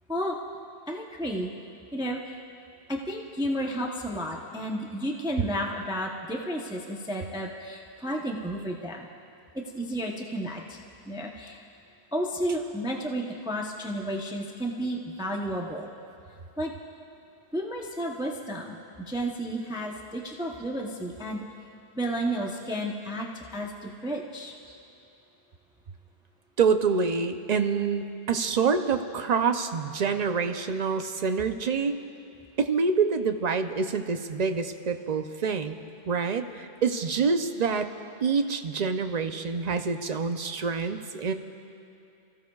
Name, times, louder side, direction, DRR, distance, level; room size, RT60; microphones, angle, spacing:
voice 1, 0.9-1.5 1.9-2.4 2.9-9.1 9.5-10.8 11.0-11.6 12.1-15.9 16.6-16.7 17.5-21.5 21.9-24.5, equal, 5° right, 0 dB, 0.7 m, -32 dB
voice 2, 26.6-32.0 32.6-35.7 36.1-37.9 38.2-41.3, right 5 dB, 45° right, 7 dB, 0.7 m, -26 dB
29.5 x 15.5 x 2.4 m, 2.7 s
omnidirectional pair, 1.1 m